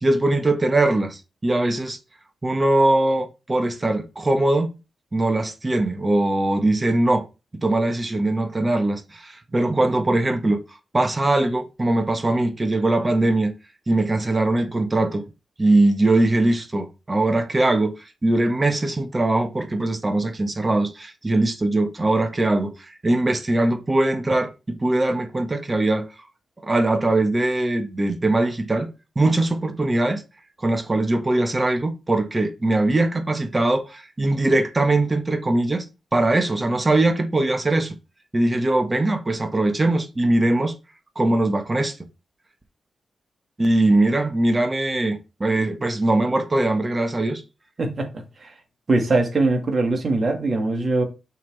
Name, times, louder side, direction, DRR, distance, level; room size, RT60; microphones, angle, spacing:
voice 1, 0.0-2.0 2.4-4.7 5.1-7.2 7.6-10.6 10.9-13.5 13.9-15.2 15.6-17.9 18.2-26.0 26.6-28.9 29.1-30.2 30.6-35.8 36.1-38.0 38.3-40.8 41.1-41.9 43.6-47.4, right 2 dB, 30° right, 1.4 m, -21 dB
voice 2, 47.8-48.1 48.4-48.5 48.9-51.0, right 2 dB, 50° right, 2.1 m, -21 dB
6.4 x 3.7 x 4.1 m
supercardioid pair, 45°, 0 cm